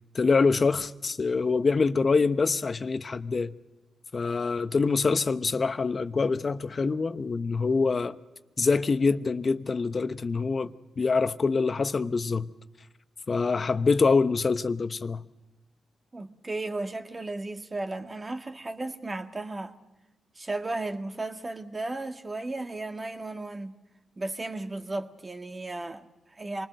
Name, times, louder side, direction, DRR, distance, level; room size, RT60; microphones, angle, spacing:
voice 1, 0.1-3.5 4.1-8.1 8.6-12.5 13.3-15.2, left 4 dB, 45° left, 1.0 m, -25 dB
voice 2, 16.1-19.8 20.4-23.7 24.2-26.7, right 2 dB, 30° right, 2.0 m, -35 dB
27.0 x 20.0 x 6.5 m
supercardioid pair, 45°, 0 cm